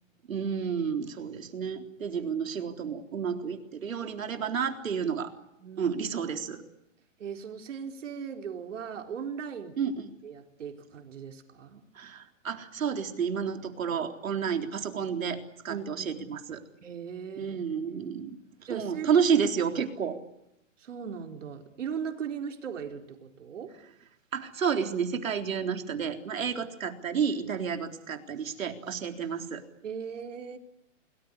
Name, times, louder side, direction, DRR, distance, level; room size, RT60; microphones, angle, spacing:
voice 1, 0.3-5.3 5.8-6.6 9.8-10.1 11.9-16.6 17.4-18.4 18.7-20.2 24.3-29.6, right 7 dB, 90° right, 5 dB, 4.0 m, -30 dB
voice 2, 5.6-5.9 7.2-9.7 10.2-11.8 14.3-14.4 15.7-16.2 16.8-17.6 17.9-18.0 18.7-19.1 20.8-23.7 29.8-30.6, right 7 dB, 65° right, 4 dB, 4.4 m, -38 dB
29.0 x 19.5 x 9.9 m, 0.82 s
hypercardioid pair, 170°, 39 cm